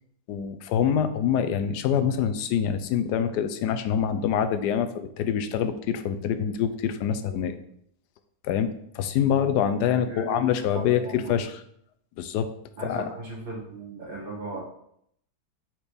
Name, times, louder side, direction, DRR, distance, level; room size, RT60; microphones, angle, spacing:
voice 1, 0.3-7.6 8.4-8.7 8.9-11.6 12.2-12.5 12.8-13.1, left 8 dB, 85° left, 10 dB, 1.2 m, -25 dB
voice 2, 10.0-11.3 12.8-14.6, right 2 dB, 35° right, -4 dB, 2.0 m, -37 dB
4.5 x 4.2 x 5.0 m, 0.71 s
omnidirectional pair, 1.7 m